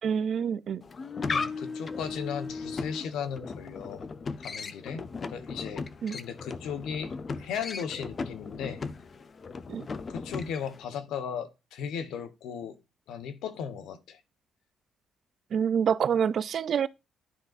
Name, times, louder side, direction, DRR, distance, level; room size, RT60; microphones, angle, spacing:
voice 1, 0.0-0.8 6.0-6.2 9.7-9.9 15.5-16.9, right 7 dB, 60° right, 0.4 m, -27 dB
sound 1, 0.8-10.8, left 4 dB, 40° left, 0.6 m, -37 dB
voice 2, 1.3-4.1 4.4-5.0 5.3-7.1 7.4-8.8 10.1-12.7 13.1-14.2, left 7 dB, 85° left, 1.0 m, -36 dB
11.5 x 3.9 x 2.5 m
cardioid pair, 90°, 0 cm